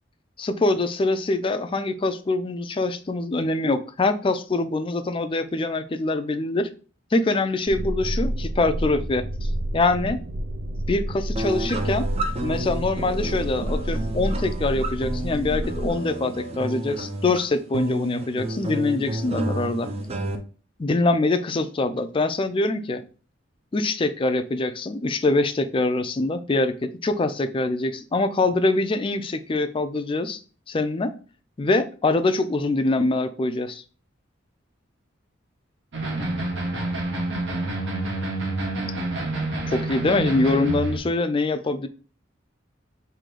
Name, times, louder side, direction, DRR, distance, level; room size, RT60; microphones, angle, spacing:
voice 1, 0.4-6.7 7.1-10.2 10.9-12.1 12.4-19.9 20.8-23.0 23.7-30.4 30.7-31.1 31.6-33.8 39.7-41.9, left 2 dB, 25° left, 9 dB, 0.4 m, -24 dB
sound 1, 7.6-15.9, right 1 dB, 85° right, 0.6 m, -29 dB
sound 2, 11.4-20.4, right 1 dB, 30° right, 0.6 m, -31 dB
sound 3, 35.9-41.0, right 2 dB, 65° right, 1.2 m, -28 dB
3.8 x 2.8 x 4.8 m, 0.38 s
head